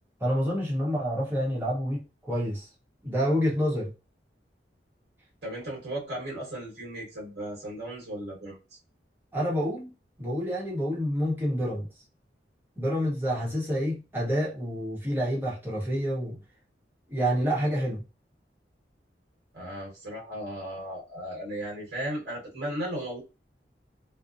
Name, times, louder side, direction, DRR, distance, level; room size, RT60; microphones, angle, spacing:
voice 1, 0.2-2.7 3.0-3.9 9.3-9.9 10.2-11.9 12.8-16.4 17.1-18.0, equal, 10° right, 0.8 m, -28 dB
voice 2, 5.4-8.6 19.5-23.2, right 1 dB, 65° right, 1.2 m, -36 dB
2.6 x 2.0 x 2.5 m
head